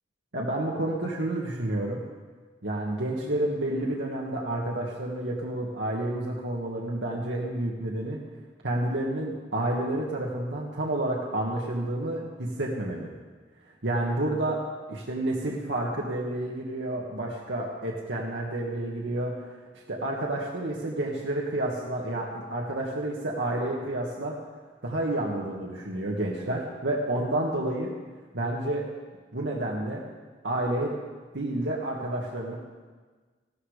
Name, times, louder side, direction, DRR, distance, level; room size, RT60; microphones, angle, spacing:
voice 1, 0.3-2.0 2.6-8.2 8.6-13.1 13.8-14.6 14.9-19.4 19.9-24.3 24.8-27.9 28.3-28.8 29.3-30.0 30.4-30.9 31.3-32.6, right 1 dB, 90° right, -3 dB, 1.7 m, -30 dB
15.0 x 13.0 x 5.0 m, 1.4 s
head